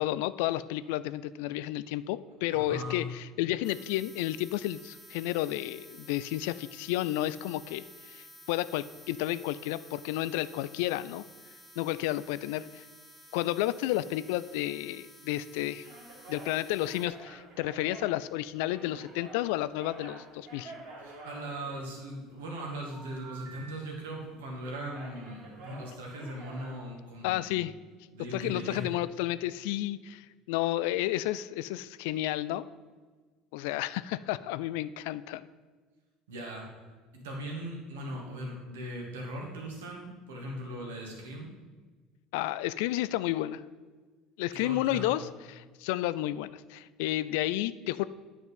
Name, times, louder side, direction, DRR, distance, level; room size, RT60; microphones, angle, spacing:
voice 1, 0.0-11.2 11.8-12.9 13.3-15.9 16.3-20.7 27.2-27.7 28.3-32.6 33.5-35.5 42.3-43.6 44.4-45.3 45.6-48.1, left 15 dB, 70° left, 16 dB, 0.3 m, -31 dB
voice 2, 2.5-3.1 21.0-27.6 28.1-28.9 36.3-36.7 37.1-41.5 44.5-45.2, right 1 dB, 75° right, 0 dB, 2.0 m, -39 dB
sound 1, 3.6-17.1, equal, ahead, 2.2 m, -53 dB
sound 2, 15.8-19.4 19.7-22.2 22.9-23.7 24.0-24.2 24.6-26.8, right 2 dB, 60° right, 2.6 m, -48 dB
9.4 x 5.4 x 5.5 m, 1.4 s
hypercardioid pair, 65°, 0 cm